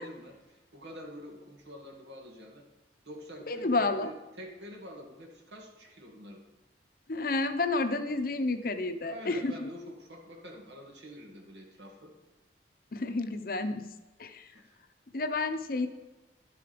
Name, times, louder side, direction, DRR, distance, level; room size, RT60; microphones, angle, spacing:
voice 1, 0.0-2.6 3.1-6.4 9.0-12.1 14.5-14.6, equal, 80° right, 0 dB, 2.1 m, -47 dB
voice 2, 3.5-4.1 7.1-9.7 12.9-13.9 14.2-14.5 15.1-15.9, left 3 dB, 55° left, 9 dB, 0.8 m, -30 dB
11.5 x 6.9 x 5.1 m, 1.1 s
head